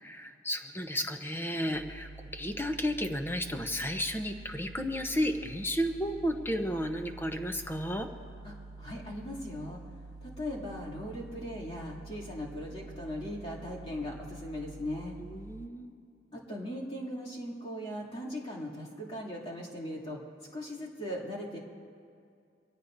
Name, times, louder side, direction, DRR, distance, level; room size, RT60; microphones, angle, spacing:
voice 1, 0.0-8.1 15.2-15.9, equal, 10° left, 5 dB, 0.7 m, -33 dB
sound 1, 1.7-15.7, right 2 dB, 90° right, 0.5 m, -48 dB
voice 2, 8.4-9.8 10.2-15.2 16.3-20.2 20.5-21.6, left 1 dB, 30° left, -6 dB, 2.6 m, -39 dB
23.5 x 17.5 x 2.6 m, 2.3 s
head